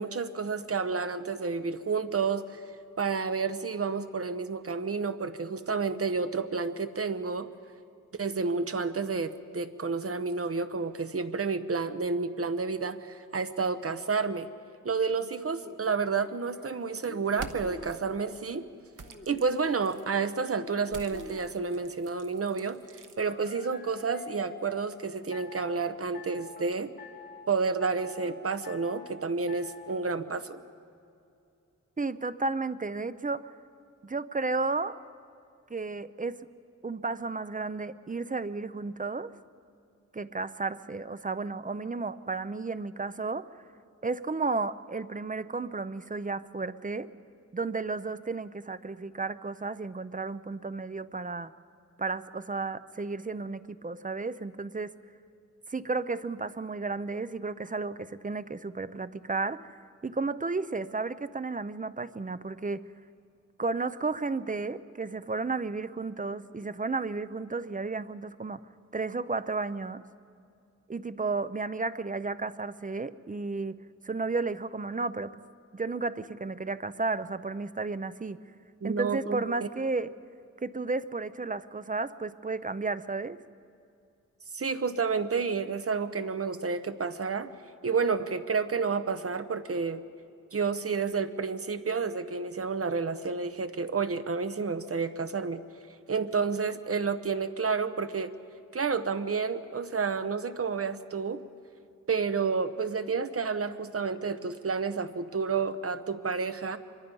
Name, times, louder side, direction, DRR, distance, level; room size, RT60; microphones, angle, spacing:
voice 1, 0.0-2.6 3.0-7.5 8.2-14.5 14.8-18.7 19.3-22.8 23.2-26.9 27.5-30.6 78.8-79.7 84.5-87.5 87.8-90.0 90.5-95.6 96.1-98.3 98.7-101.4 102.1-106.8, right 5 dB, 50° right, 11 dB, 0.9 m, -30 dB
sound 1, 15.5-18.4 19.0-21.9 23.2-24.8 25.3-25.8 26.1-26.7 27.0-27.5 27.8-28.3 28.6-29.1 29.5-30.0, left 4 dB, 35° left, 1.9 m, -48 dB
sound 2, 17.3-18.0 18.9-20.1 20.9-23.2, right 4 dB, 80° right, 1.3 m, -46 dB
voice 2, 32.0-33.5 34.0-35.0 35.7-36.5 36.8-39.4 40.1-43.5 44.0-47.1 47.5-51.5 52.0-54.9 55.7-59.8 60.0-62.8 63.6-68.6 68.9-70.0 70.9-75.3 75.7-78.4 78.8-80.1 80.6-83.4, right 3 dB, 25° right, 14 dB, 0.5 m, -33 dB
25.0 x 23.0 x 5.4 m, 2.5 s
wide cardioid pair, 120°, 31 cm